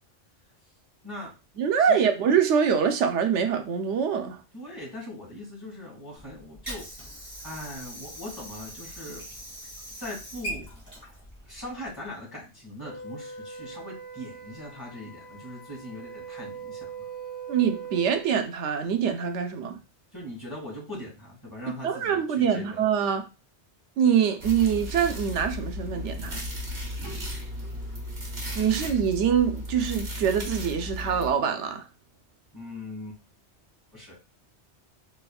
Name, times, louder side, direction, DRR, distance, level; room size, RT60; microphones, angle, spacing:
voice 1, 1.6-4.4 17.5-19.8 21.8-23.3 24.0-26.4 28.6-31.9, right 7 dB, 90° right, 0.9 m, -24 dB
voice 2, 4.5-6.9 7.4-9.2 10.0-10.7 11.4-17.1 20.1-22.8 32.5-33.2 33.9-34.2, left 1 dB, 20° left, 1.9 m, -40 dB
Water / Sink (filling or washing), 6.2-12.2, right 1 dB, 10° right, 1.8 m, -41 dB
Wind instrument woodwind instrument, 12.8-18.3, right 6 dB, 45° right, 0.8 m, -41 dB
sound 1, 24.4-31.3, left 1 dB, 65° right, 1.6 m, -35 dB
4.1 x 3.4 x 2.3 m
omnidirectional pair, 1.2 m